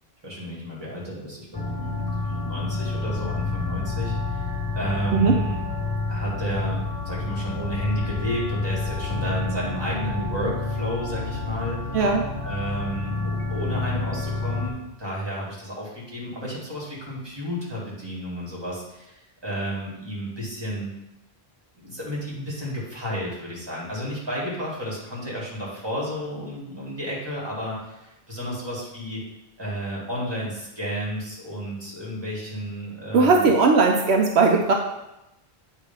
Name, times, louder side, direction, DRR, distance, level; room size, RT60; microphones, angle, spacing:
voice 1, 0.2-5.6 6.1-11.8 12.4-20.9 21.8-29.2 29.6-33.5, equal, 25° right, -5 dB, 2.1 m, -32 dB
sound 1, 1.5-14.7, left 3 dB, 30° left, 0.5 m, -29 dB
voice 2, 11.9-12.2 33.1-34.7, right 4 dB, 80° right, 1 dB, 0.9 m, -18 dB
8.0 x 2.7 x 5.3 m, 0.92 s
omnidirectional pair, 1.1 m